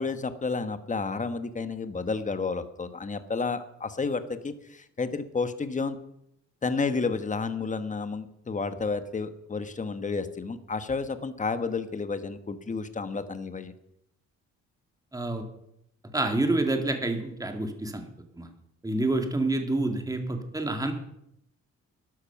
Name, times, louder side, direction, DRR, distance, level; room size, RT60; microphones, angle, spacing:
voice 1, 0.0-6.0 6.6-13.7, left 4 dB, 25° left, 10 dB, 1.3 m, -31 dB
voice 2, 15.1-15.4 16.1-18.5 18.8-20.9, right 2 dB, 10° right, 5 dB, 2.2 m, -28 dB
12.5 x 11.5 x 5.9 m, 0.78 s
cardioid pair, 90°, 30 cm